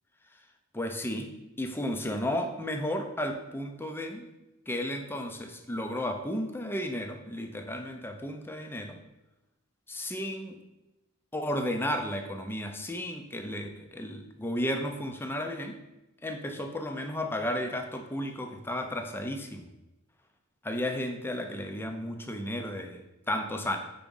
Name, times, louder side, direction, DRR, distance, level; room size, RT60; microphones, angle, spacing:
voice 1, 0.7-1.3 1.6-4.3 4.7-9.0 9.9-10.6 11.3-15.8 16.2-19.7 20.6-23.8, left 1 dB, 10° left, 5 dB, 0.5 m, -33 dB
5.0 x 3.6 x 5.3 m, 0.98 s
head